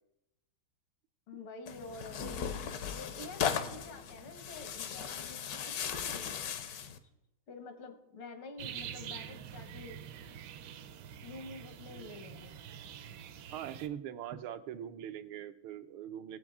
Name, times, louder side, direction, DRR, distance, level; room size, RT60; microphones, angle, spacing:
voice 1, 1.3-2.2 2.9-6.9 7.5-10.0 11.2-12.5, left 3 dB, 80° left, 6 dB, 2.2 m, -48 dB
Tearing, 1.7-7.0, left 7 dB, 65° left, 1.0 m, -37 dB
sound 1, 8.6-13.9, right 9 dB, 70° right, 1.2 m, -46 dB
voice 2, 13.5-16.4, right 10 dB, 85° right, 9 dB, 1.6 m, -42 dB
20.5 x 7.8 x 3.6 m, 0.93 s
omnidirectional pair, 2.3 m